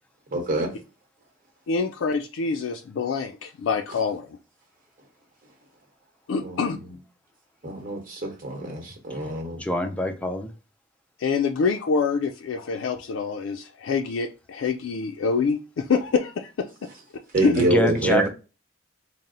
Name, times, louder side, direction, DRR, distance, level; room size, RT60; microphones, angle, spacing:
voice 1, 0.3-0.7 6.4-6.9 7.6-9.6 17.3-18.3, right 2 dB, 45° right, 1.1 m, -26 dB
voice 2, 1.7-4.3 6.3-6.8 11.2-16.7 17.4-17.5, left 5 dB, 85° left, 0.4 m, -25 dB
voice 3, 9.6-10.5 17.6-18.3, left 1 dB, 5° left, 0.4 m, -25 dB
4.1 x 2.0 x 3.8 m
head